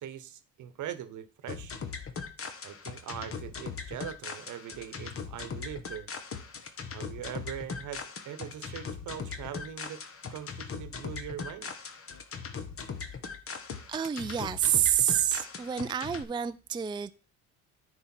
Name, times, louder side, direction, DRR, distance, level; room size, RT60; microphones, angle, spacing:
voice 1, 0.0-1.8 2.6-6.1 6.9-10.0 10.3-11.8, right 10 dB, 60° right, 1.1 m, -41 dB
sound 1, 1.5-16.2, left 5 dB, 40° left, 1.3 m, -40 dB
voice 2, 13.9-17.1, right 10 dB, 15° right, 0.4 m, -28 dB
9.7 x 4.8 x 4.4 m
supercardioid pair, 75°, 34 cm